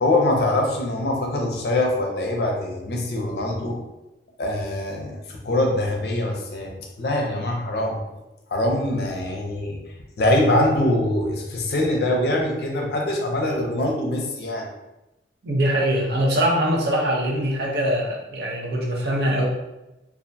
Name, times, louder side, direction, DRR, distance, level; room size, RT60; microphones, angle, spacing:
voice 1, 0.0-3.8 4.4-6.7 7.0-8.0 8.5-9.8 10.2-14.7, left 1 dB, 65° left, 0 dB, 0.5 m, -23 dB
voice 2, 15.4-19.5, right 1 dB, 65° right, -2 dB, 0.6 m, -22 dB
2.4 x 2.2 x 2.6 m, 0.97 s
head